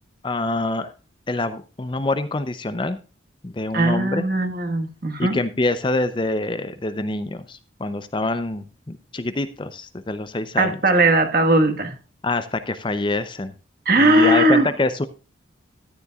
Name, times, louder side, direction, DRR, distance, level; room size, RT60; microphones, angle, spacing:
voice 1, 0.2-0.9 1.3-3.0 3.4-4.3 5.2-10.8 12.2-13.5 14.0-15.0, left 2 dB, 25° left, 12 dB, 0.6 m, -25 dB
voice 2, 3.7-5.4 10.6-11.9 13.8-14.7, right 1 dB, 50° right, 6 dB, 1.5 m, -18 dB
13.5 x 10.0 x 2.3 m, 0.34 s
head